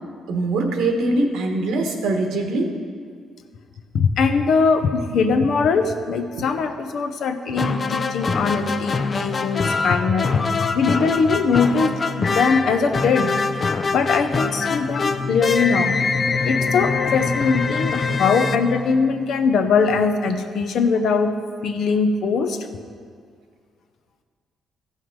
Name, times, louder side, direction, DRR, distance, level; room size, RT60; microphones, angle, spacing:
voice 1, 0.3-2.7, right 2 dB, 85° right, 3 dB, 1.3 m, -22 dB
voice 2, 3.9-10.3 10.6-13.4 13.9-16.0 16.4-21.3 21.6-22.6, left 5 dB, 70° left, 7 dB, 0.7 m, -21 dB
sound 1, 7.5-19.4, left 4 dB, 35° left, 0.5 m, -24 dB
14.0 x 5.6 x 4.7 m, 2.1 s
cardioid pair, 90°, 0 cm